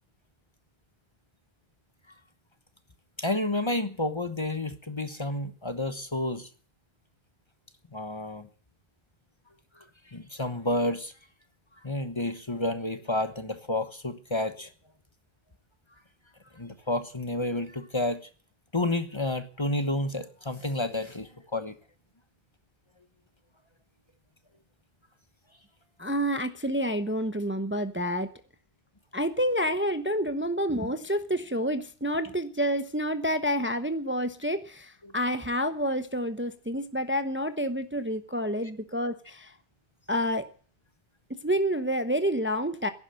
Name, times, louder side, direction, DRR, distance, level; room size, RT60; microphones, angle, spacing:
voice 1, 3.2-6.5 7.9-8.5 10.1-11.1 11.8-14.7 16.5-18.2 18.7-21.7 35.0-35.1, left 1 dB, 25° left, 10 dB, 1.1 m, -30 dB
voice 2, 26.0-28.3 29.1-39.5 40.1-40.5 41.3-42.9, equal, 10° right, 10 dB, 0.8 m, -28 dB
16.0 x 11.0 x 7.7 m, 0.43 s
omnidirectional pair, 1.1 m